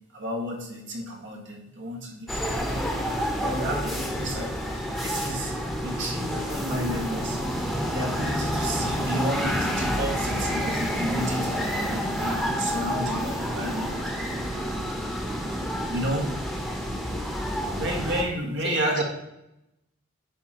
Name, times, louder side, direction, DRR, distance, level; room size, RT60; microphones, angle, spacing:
voice 1, 0.1-2.7 3.4-5.5 5.8-7.4 7.9-14.0 15.9-16.3 17.7-19.0, equal, 65° right, 1 dB, 1.9 m, -31 dB
sound 1, 2.3-18.2, equal, ahead, 1.1 m, -29 dB
Bowed string instrument, 5.3-9.5, right 1 dB, 40° right, 2.2 m, -43 dB
sound 2, 7.3-16.3, right 1 dB, 25° right, 0.8 m, -37 dB
voice 2, 16.5-16.8 17.1-17.3 18.6-19.0, left 3 dB, 50° left, 6 dB, 1.1 m, -38 dB
9.9 x 5.3 x 4.4 m, 0.88 s
head